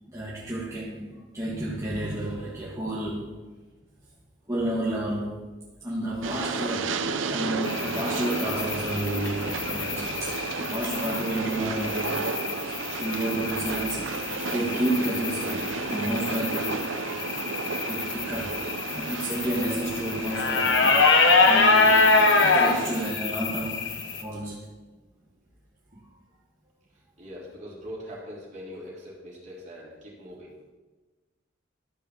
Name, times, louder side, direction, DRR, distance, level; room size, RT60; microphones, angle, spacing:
voice 1, 0.1-3.4 4.5-5.4 5.8-16.9 17.8-21.2 21.4-22.0 22.4-24.6, right 1 dB, 15° right, -6 dB, 1.5 m, -31 dB
Train, 6.2-23.1, right 4 dB, 80° right, 0.7 m, -33 dB
sound 1, 7.6-24.2, left 3 dB, 65° left, 1.3 m, -25 dB
voice 2, 27.2-30.5, equal, 35° right, -5 dB, 3.5 m, -41 dB
12.5 x 5.7 x 6.9 m, 1.2 s
head